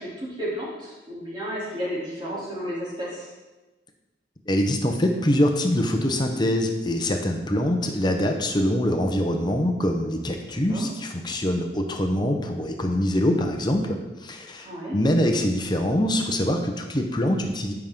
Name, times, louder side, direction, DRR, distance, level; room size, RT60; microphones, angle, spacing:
voice 1, 0.0-3.3 10.4-10.9 14.6-15.0, equal, 25° right, -7 dB, 3.1 m, -32 dB
voice 2, 4.5-17.7, left 1 dB, 25° left, 4 dB, 0.8 m, -24 dB
14.0 x 5.8 x 3.7 m, 1.1 s
head